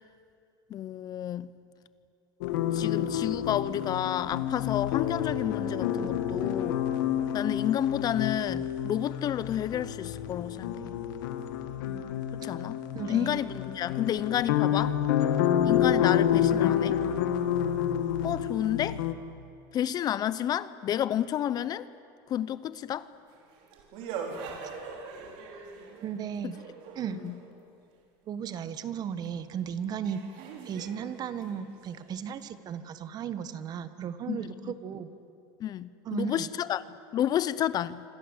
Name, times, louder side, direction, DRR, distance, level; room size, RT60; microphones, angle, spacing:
voice 1, 0.7-1.5 2.7-6.8 7.3-11.0 12.3-12.8 13.1-15.0 15.6-17.0 18.2-19.0 19.7-21.9 22.3-23.1 26.4-26.5 27.2-27.3 34.3-34.7 35.6-36.8 37.1-38.0, left 11 dB, 40° left, 0.7 m, -30 dB
sound 1, 2.4-19.1, left 10 dB, 80° left, 1.9 m, -29 dB
voice 2, 12.9-13.4 26.0-26.6 26.9-27.2 28.3-30.2 30.6-35.1 36.0-36.5, right 8 dB, 40° right, 1.5 m, -35 dB
sound 2, 23.2-27.5 29.4-29.5 30.0-32.5, right 5 dB, 65° right, 4.5 m, -42 dB
27.0 x 26.0 x 8.2 m
supercardioid pair, 125°, 11 cm